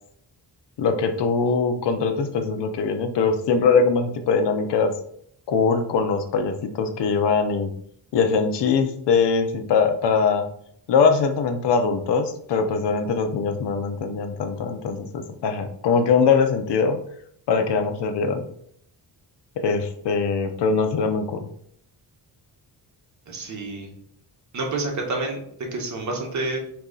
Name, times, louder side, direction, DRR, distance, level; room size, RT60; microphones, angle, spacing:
voice 1, 0.8-4.9 5.5-7.7 8.1-10.5 10.9-17.0 17.5-18.5 19.6-21.5, left 5 dB, 85° left, 8 dB, 0.7 m, -22 dB
voice 2, 23.3-23.9 24.5-25.4 25.7-26.6, right 2 dB, 45° right, 1 dB, 1.0 m, -28 dB
3.8 x 2.9 x 3.7 m, 0.66 s
wide cardioid pair, 160°, 40 cm